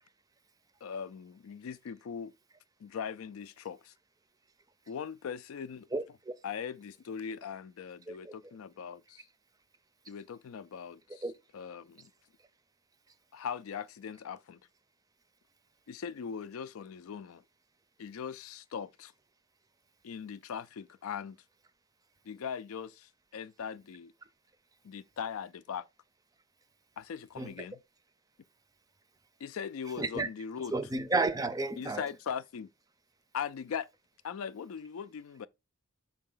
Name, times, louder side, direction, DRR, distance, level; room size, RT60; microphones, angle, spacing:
voice 1, 0.8-2.3 2.8-3.9 4.9-5.9 6.4-9.3 10.1-11.3 11.5-12.1 13.3-14.6 15.9-17.4 18.0-19.1 20.0-21.4 22.3-24.1 24.8-25.9 27.0-27.8 29.4-30.7 31.8-32.7 33.3-33.9 34.2-35.5, left 7 dB, 80° left, 0.4 m, -40 dB
voice 2, 5.9-6.3 8.1-8.3 11.2-11.3 27.4-27.5 30.0-30.3 30.7-32.0, right 3 dB, 15° right, 0.5 m, -32 dB
5.5 x 4.8 x 3.7 m
head